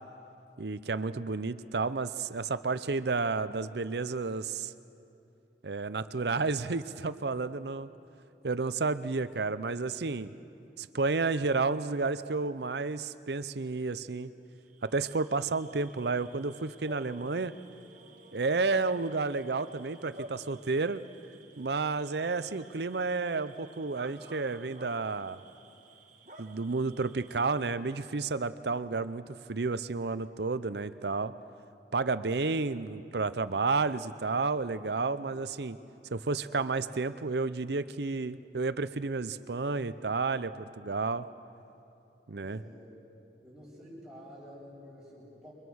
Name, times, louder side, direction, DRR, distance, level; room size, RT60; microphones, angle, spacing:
voice 1, 0.6-4.7 5.6-7.9 8.4-10.3 10.8-14.3 14.8-17.5 18.3-21.0 21.6-25.4 26.4-29.2 29.5-31.3 31.9-35.8 36.1-41.3 42.3-42.6, right 4 dB, 70° right, 13 dB, 0.7 m, -31 dB
Bark / Cricket, 14.6-27.9, right 1 dB, 45° right, 1.8 m, -52 dB
voice 2, 42.3-42.9 43.4-45.5, equal, 5° right, -7 dB, 6.7 m, -50 dB
29.0 x 23.5 x 6.4 m, 2.7 s
head